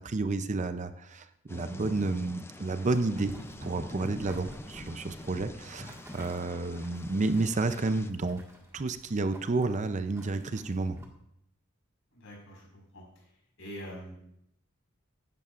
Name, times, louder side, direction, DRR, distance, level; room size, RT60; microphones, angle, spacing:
voice 1, 0.0-3.3 3.6-8.4 8.7-11.0, right 3 dB, 35° right, 10 dB, 0.5 m, -31 dB
Thunder / Rain, 1.5-8.1, left 1 dB, 10° left, 0.5 m, -45 dB
Boiling, 3.1-11.1, equal, 15° right, 1.7 m, -51 dB
voice 2, 12.1-13.2 13.6-14.2, equal, 70° left, -1 dB, 5.0 m, -45 dB
15.0 x 11.0 x 2.5 m, 0.75 s
head